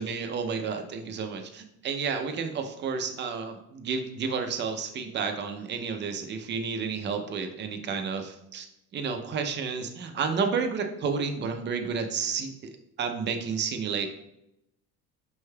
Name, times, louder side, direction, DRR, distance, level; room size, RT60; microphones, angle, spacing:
voice 1, 0.0-8.7 8.9-12.5 13.0-14.1, right 5 dB, 35° right, 6 dB, 0.5 m, -31 dB
5.3 x 3.3 x 2.2 m, 0.82 s
cardioid pair, 135°, 33 cm